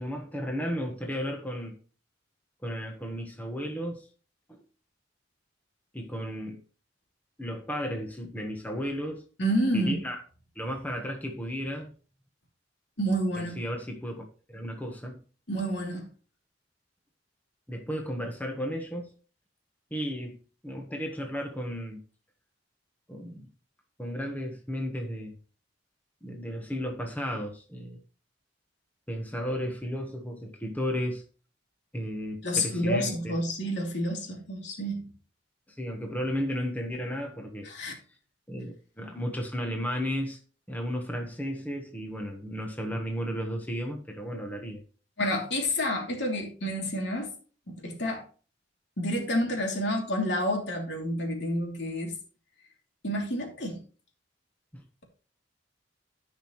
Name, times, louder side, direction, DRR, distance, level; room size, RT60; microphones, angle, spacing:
voice 1, 0.0-1.8 2.6-4.1 4.5-4.6 5.9-6.6 7.4-9.2 9.7-10.2 10.5-11.9 13.4-14.2 14.5-15.2 17.7-19.1 19.9-22.0 23.1-23.5 24.0-25.3 26.2-28.0 29.1-31.2 31.9-33.4 35.7-37.7 38.5-40.4 40.7-44.8 54.7-54.8, equal, 10° left, 1.2 m, -34 dB
voice 2, 9.4-10.0 13.0-13.6 15.5-16.1 32.4-35.1 37.6-37.9 45.2-47.3 47.7-48.2 49.0-52.1 53.0-53.8, equal, 70° left, 3.1 m, -29 dB
15.0 x 5.6 x 3.2 m
head